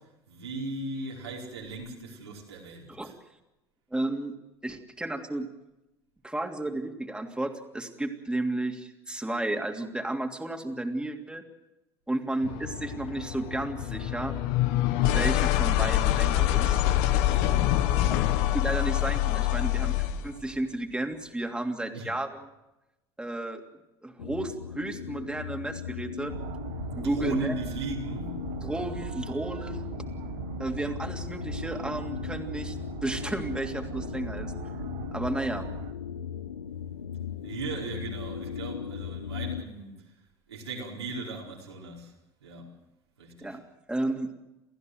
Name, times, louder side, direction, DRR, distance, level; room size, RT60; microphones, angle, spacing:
voice 1, 0.0-3.1 17.2-18.2 21.9-22.1 26.9-28.4 37.4-40.2 40.5-42.1 42.4-42.7 43.2-43.6, right 3 dB, 85° right, 4.8 m, -38 dB
voice 2, 3.9-4.3 4.6-5.5 6.2-11.4 12.1-14.4 15.0-16.8 18.5-22.4 23.2-23.6 24.0-26.3 27.0-27.5 28.6-29.9 30.6-32.8 33.0-34.5 35.1-35.7 43.4-43.6 43.9-44.3, right 2 dB, 5° right, 2.9 m, -32 dB
sound 1, 12.4-20.3, left 13 dB, 60° left, 1.5 m, -25 dB
sound 2, 24.2-39.6, left 8 dB, 85° left, 0.8 m, -38 dB
sound 3, 26.3-35.9, right 11 dB, 60° right, 1.5 m, -40 dB
29.5 x 15.0 x 7.9 m
hypercardioid pair, 70°, 13 cm